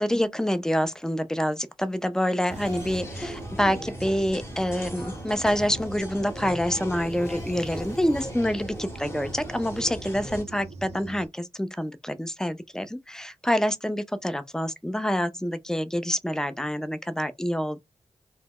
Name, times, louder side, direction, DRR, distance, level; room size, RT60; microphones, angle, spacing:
voice 1, 0.0-17.8, equal, 5° left, 0.4 m, -27 dB
sound 1, 2.5-10.4, left 1 dB, 20° left, 0.9 m, -38 dB
sound 2, 2.5-11.3, right 4 dB, 75° right, 0.4 m, -42 dB
2.1 x 2.0 x 3.5 m
cardioid pair, 50°, 11 cm